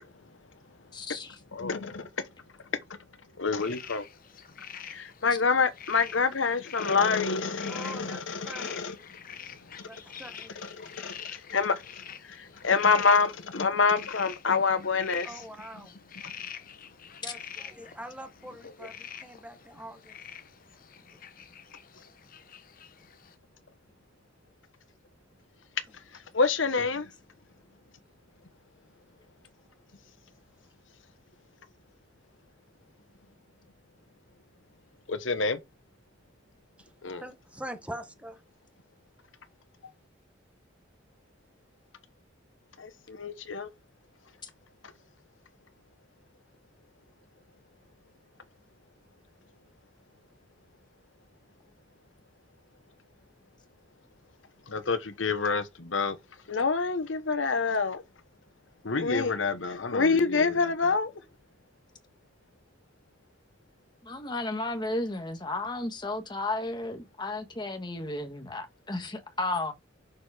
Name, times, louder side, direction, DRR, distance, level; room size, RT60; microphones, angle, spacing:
voice 1, 0.9-1.3 64.0-69.7, left 2 dB, 25° left, 1.3 m, -33 dB
voice 2, 1.5-2.1 3.4-4.0 4.9-9.0 10.5-11.8 12.3-15.3 26.3-27.1 35.1-35.6 37.0-37.2 42.8-43.7 54.7-56.2 56.5-58.0 58.8-61.1, left 4 dB, 85° left, 1.0 m, -27 dB
sound 1, 3.6-23.3, left 8 dB, 45° left, 0.9 m, -46 dB
voice 3, 7.7-8.8 9.9-10.5 15.2-16.0 17.2-20.2 36.8-38.4, right 1 dB, 5° right, 0.9 m, -43 dB
6.8 x 4.7 x 4.9 m
head